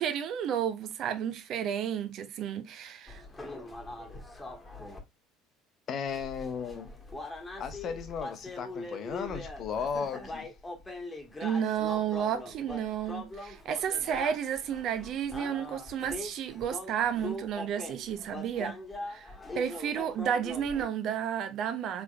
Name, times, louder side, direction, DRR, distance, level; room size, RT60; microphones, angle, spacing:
voice 1, 0.0-3.2 11.4-18.8 19.1-19.3 19.5-22.0, right 8 dB, 50° right, 0.6 m, -32 dB
sound 1, 3.1-5.0 6.1-20.9, left 2 dB, 15° left, 1.4 m, -42 dB
voice 2, 5.9-6.9 7.6-10.5, left 6 dB, 45° left, 0.8 m, -35 dB
4.6 x 3.4 x 2.3 m
figure-of-eight pair, 60°, 0 cm